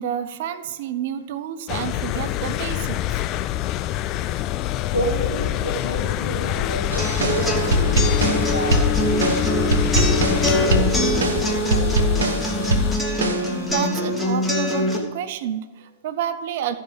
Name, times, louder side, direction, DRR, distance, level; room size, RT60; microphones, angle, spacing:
voice 1, 0.0-3.0 13.7-16.7, right 10 dB, 50° right, 11 dB, 0.6 m, -29 dB
sound 1, 1.7-13.0, left 12 dB, 35° left, 0.3 m, -26 dB
voice 2, 4.7-9.8 10.3-12.5, equal, 80° left, -5 dB, 3.2 m, -30 dB
sound 2, 6.9-13.7, equal, 70° right, 1.0 m, -23 dB
sound 3, 7.0-15.0, equal, 5° left, 1.4 m, -24 dB
13.5 x 5.5 x 5.2 m, 1.3 s
figure-of-eight pair, 100°, 0 cm